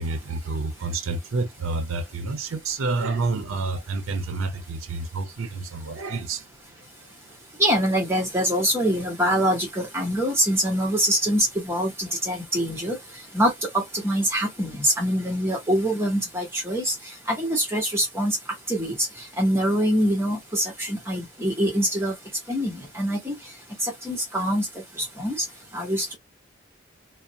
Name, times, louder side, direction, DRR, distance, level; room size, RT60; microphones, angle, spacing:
voice 1, 0.0-6.5, right 3 dB, 90° right, 0.5 m, -29 dB
voice 2, 7.6-13.0 13.3-16.9 17.3-18.4 18.7-19.1 19.4-22.1 22.5-23.4 23.8-24.7 25.0-25.4 25.7-26.2, equal, 10° right, 1.0 m, -24 dB
2.5 x 2.0 x 2.7 m
head